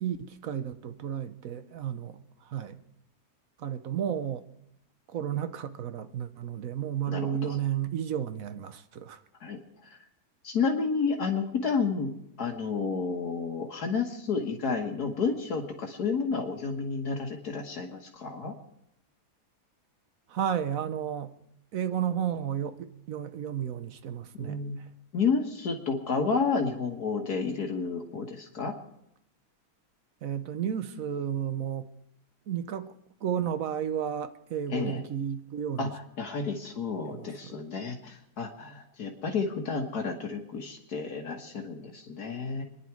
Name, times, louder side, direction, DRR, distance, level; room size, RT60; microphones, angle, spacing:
voice 1, 0.0-2.8 3.6-4.5 5.1-9.2 20.3-21.3 21.7-24.9 30.2-31.9 32.5-32.9 33.2-35.9 37.0-37.6, right 9 dB, 60° right, 1.1 m, -32 dB
voice 2, 7.1-7.6 9.4-9.6 9.9-10.0 10.4-12.1 12.4-18.5 24.3-24.8 25.1-28.7 34.7-35.0 35.8-42.6, left 5 dB, 70° left, 1.9 m, -31 dB
26.5 x 10.5 x 4.7 m
omnidirectional pair, 1.7 m